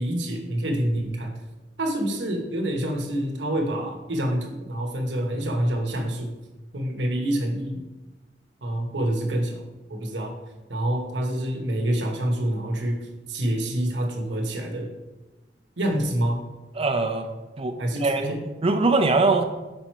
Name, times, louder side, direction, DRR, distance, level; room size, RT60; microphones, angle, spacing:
voice 1, 0.0-1.4 1.8-6.3 6.7-7.8 8.6-9.6 9.9-10.4 10.7-14.9 15.8-16.5 17.8-18.4, right 1 dB, 90° right, 2 dB, 1.0 m, -27 dB
voice 2, 16.7-17.3 17.6-17.7 18.0-19.4, right 3 dB, 35° right, 6 dB, 0.5 m, -22 dB
5.2 x 4.5 x 4.4 m, 1.1 s
head